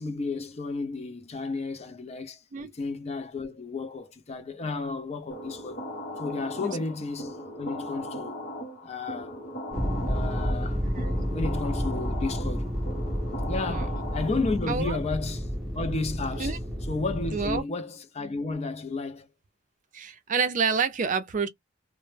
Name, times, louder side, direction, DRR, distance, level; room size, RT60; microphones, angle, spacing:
voice 1, 0.0-5.8 6.2-8.4 8.8-9.3 10.1-12.8 13.5-16.6 16.8-19.3, left 3 dB, 30° left, 0.4 m, -33 dB
sound 1, 5.3-14.8, equal, 50° left, 1.0 m, -38 dB
sound 2, 9.7-17.6, equal, ahead, 0.7 m, -30 dB
voice 2, 14.7-15.0 16.4-16.6 17.3-17.6 19.9-21.5, right 5 dB, 40° right, 0.4 m, -28 dB
2.0 x 2.0 x 3.1 m
head